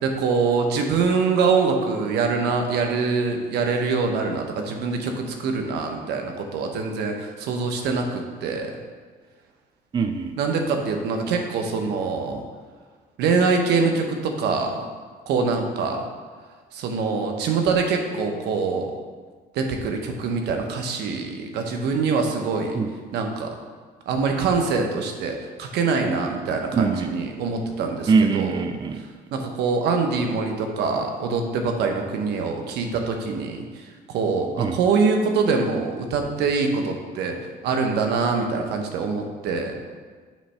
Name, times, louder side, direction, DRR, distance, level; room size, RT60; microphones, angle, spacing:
voice 1, 0.0-8.7 10.4-12.4 13.2-14.9 15.3-16.1 16.7-18.9 19.5-22.8 23.1-23.5 24.1-28.7 29.3-37.4 37.6-39.7, right 4 dB, 80° right, 3 dB, 0.9 m, -24 dB
voice 2, 9.9-10.3 22.8-22.9 26.7-27.1 28.1-29.0 34.6-34.8, right 5 dB, 25° right, 7 dB, 0.4 m, -22 dB
7.3 x 3.2 x 5.5 m, 1.5 s
cardioid pair, 110°, 17 cm